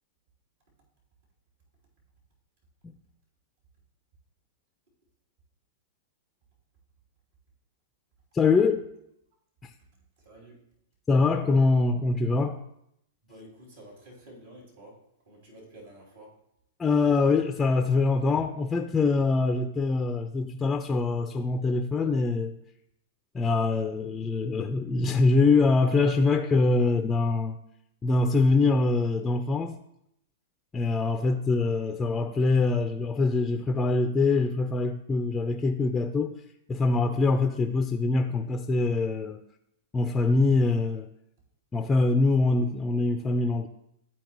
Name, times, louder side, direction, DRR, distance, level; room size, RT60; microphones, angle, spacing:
voice 1, 8.3-8.8 9.6-9.7 11.1-12.6 16.8-22.5 23.3-27.6 28.0-29.8 30.7-36.4 36.7-39.4 39.9-41.1 41.7-43.7, left 3 dB, 15° left, 0.4 m, -24 dB
voice 2, 10.2-10.6 13.2-15.0 15.3-16.4, right 1 dB, 70° right, 2.9 m, -50 dB
12.5 x 4.4 x 3.0 m
hypercardioid pair, 110°, 0 cm